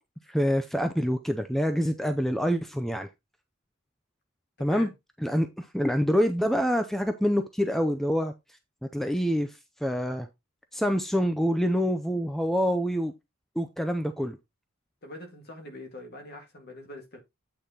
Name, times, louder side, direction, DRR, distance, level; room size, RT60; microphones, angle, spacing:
voice 1, 0.3-3.1 4.6-4.9 5.2-8.3 8.8-10.3 10.7-13.1 13.6-14.4, equal, ahead, 0.5 m, -26 dB
voice 2, 4.6-4.9 15.0-17.2, left 1 dB, 50° left, 2.1 m, -43 dB
8.5 x 4.2 x 3.8 m
head